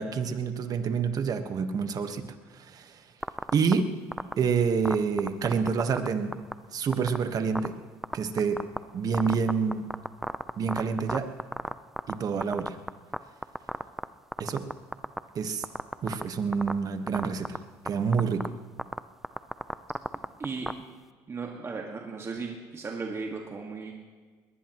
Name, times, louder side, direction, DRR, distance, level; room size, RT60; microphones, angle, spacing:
voice 1, 0.0-2.2 2.7-2.9 3.5-3.9 4.4-6.4 6.7-7.7 8.1-8.6 8.9-9.9 10.6-11.3 12.1-12.8 14.4-14.6 15.3-15.6 16.0-17.6 17.8-18.5, right 5 dB, 50° right, 7 dB, 1.4 m, -27 dB
sound 1, 3.2-3.7 4.1-4.3 4.8-6.1 6.3-6.5 6.9-7.2 7.5-7.7 8.0-8.8 9.1-12.1 12.4-13.2 13.4-14.0 14.3-15.2 15.6-16.2 16.5-16.7 17.1-17.6 17.9-18.0 18.1-18.5 18.8-19.0 19.2-20.7, right 1 dB, 5° right, 0.6 m, -30 dB
voice 2, 20.4-20.7 21.3-23.9, right 4 dB, 35° right, 1 dB, 1.9 m, -36 dB
21.5 x 18.5 x 3.1 m, 1.5 s
supercardioid pair, 85°, 8 cm